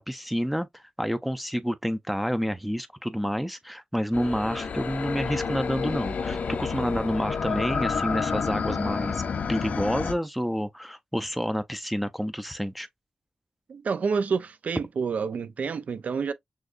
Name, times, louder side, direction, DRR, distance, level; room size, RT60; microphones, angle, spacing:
voice 1, 0.0-9.2 9.5-12.9, equal, 5° right, 0.4 m, -29 dB
sound 1, 4.1-10.1, left 5 dB, 75° left, 0.5 m, -29 dB
voice 2, 13.7-16.3, right 5 dB, 70° right, 0.4 m, -28 dB
6.3 x 2.3 x 2.4 m
wide cardioid pair, 90°, 3 cm